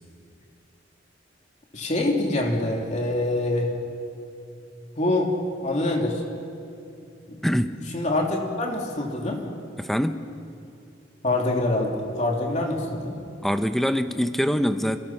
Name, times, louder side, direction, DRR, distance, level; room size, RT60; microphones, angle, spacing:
voice 1, 1.7-3.7 5.0-5.3 5.6-6.2 7.3-7.4 7.9-9.4 11.2-13.2, left 2 dB, 35° left, 0 dB, 2.8 m, -25 dB
voice 2, 7.4-7.8 9.8-10.2 13.4-15.0, equal, ahead, 8 dB, 0.9 m, -24 dB
28.5 x 27.0 x 6.0 m, 2.6 s
head